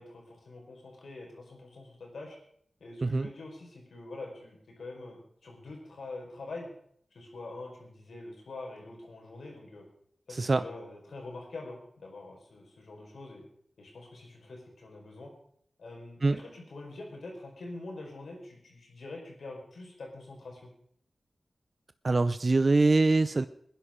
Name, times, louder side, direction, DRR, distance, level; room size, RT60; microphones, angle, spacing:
voice 1, 0.0-2.4 2.8-6.7 7.1-9.8 10.3-13.4 13.8-15.3 15.8-20.7, left 2 dB, 85° left, 0 dB, 4.9 m, -45 dB
voice 2, 10.3-10.6 16.2-16.4 22.0-23.5, right 3 dB, 50° right, 12 dB, 0.6 m, -24 dB
21.0 x 10.5 x 5.1 m, 0.65 s
cardioid pair, 60°, 0 cm